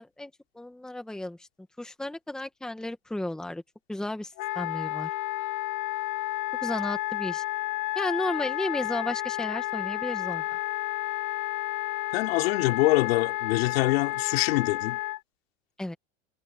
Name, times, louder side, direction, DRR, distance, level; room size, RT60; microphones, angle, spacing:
voice 1, 0.0-1.5 1.8-3.6 3.9-5.1 6.6-7.4 7.9-10.4 15.8-16.0, left 1 dB, ahead, 1.4 m, -33 dB
Wind instrument woodwind instrument, 4.4-15.2, left 16 dB, 45° left, 2.0 m, -31 dB
voice 2, 12.1-15.0, left 19 dB, 75° left, 4.0 m, -25 dB
supercardioid pair, 165°, 31 cm